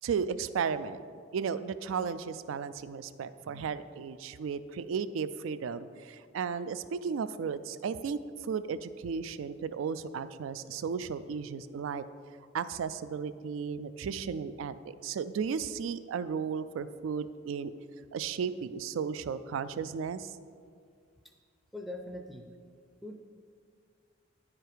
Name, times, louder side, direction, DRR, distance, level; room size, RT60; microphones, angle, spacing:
voice 1, 0.0-1.0 1.3-12.0 12.5-17.7 18.1-20.3, right 6 dB, 85° right, 14 dB, 0.3 m, -34 dB
voice 2, 21.7-22.5 23.0-23.2, left 1 dB, ahead, 3 dB, 0.4 m, -42 dB
9.8 x 4.9 x 4.7 m, 2.1 s
head